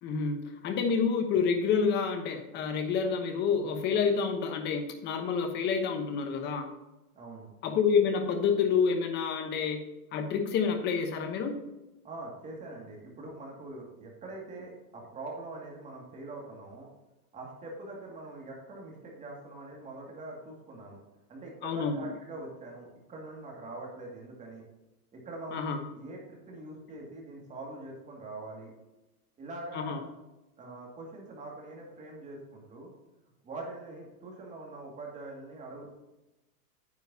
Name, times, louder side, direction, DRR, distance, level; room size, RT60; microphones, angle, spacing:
voice 1, 0.0-6.7 7.6-9.9 10.1-11.5 21.6-22.0 25.5-25.8 29.7-30.0, left 6 dB, 25° left, 5 dB, 1.1 m, -28 dB
voice 2, 7.2-7.5 12.0-16.9 17.3-21.0 21.3-24.6 25.1-28.7 29.4-30.0 30.6-32.9 33.4-35.9, right 2 dB, 15° right, -2 dB, 2.3 m, -43 dB
9.5 x 8.9 x 2.8 m, 1.0 s
supercardioid pair, 160°, 46 cm